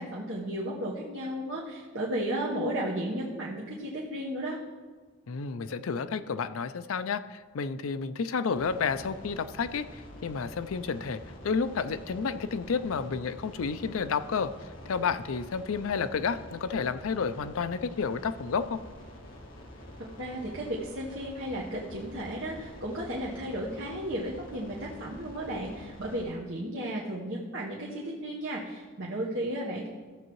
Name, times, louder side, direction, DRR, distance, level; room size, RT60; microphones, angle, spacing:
voice 1, 0.0-4.6 20.2-29.9, right 1 dB, 65° right, -4 dB, 1.2 m, -34 dB
voice 2, 5.3-14.5 14.9-18.8, left 5 dB, 85° left, 12 dB, 0.5 m, -31 dB
sound 1, 8.6-26.2, equal, 70° left, 1.6 m, -47 dB
15.0 x 7.3 x 3.1 m, 1.4 s
head